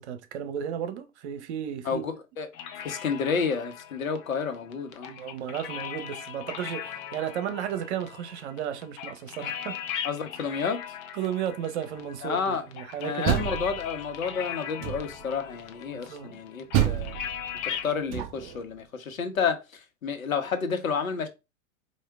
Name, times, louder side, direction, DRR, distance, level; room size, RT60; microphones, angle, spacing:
voice 1, 0.0-2.0 5.1-10.0 11.1-13.4 16.1-16.4, right 9 dB, 55° right, 0.9 m, -34 dB
voice 2, 1.8-2.5 2.8-5.1 10.0-10.8 12.2-12.6 13.0-17.2 17.6-19.6 20.0-21.3, left 6 dB, 75° left, 1.2 m, -30 dB
sound 1, 2.5-17.9, left 9 dB, 35° left, 0.7 m, -39 dB
Door, 13.0-14.2 14.8-15.4 16.7-18.6, right 11 dB, 30° right, 0.4 m, -29 dB
4.7 x 2.6 x 3.5 m
hypercardioid pair, 110°, 41 cm